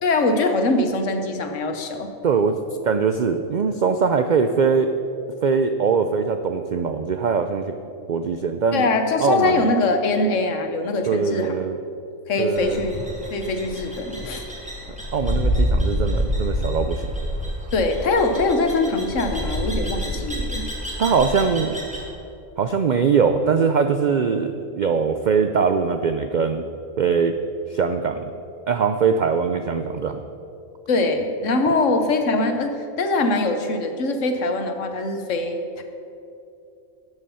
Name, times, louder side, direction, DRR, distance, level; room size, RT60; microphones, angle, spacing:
voice 1, 0.0-2.1 8.7-11.5 12.3-14.5 17.7-20.7 30.9-35.8, left 2 dB, 65° left, 6 dB, 1.3 m, -22 dB
voice 2, 2.2-4.9 5.4-7.7 8.1-8.9 9.2-9.7 11.1-11.8 12.4-12.8 15.1-17.1 21.0-21.8 22.6-26.6 27.0-27.3 27.7-28.2 28.7-30.2, right 5 dB, 85° right, 8 dB, 0.4 m, -21 dB
sound 1, 12.6-22.1, equal, 5° right, 2.0 m, -27 dB
12.5 x 8.0 x 5.6 m, 2.7 s
omnidirectional pair, 1.4 m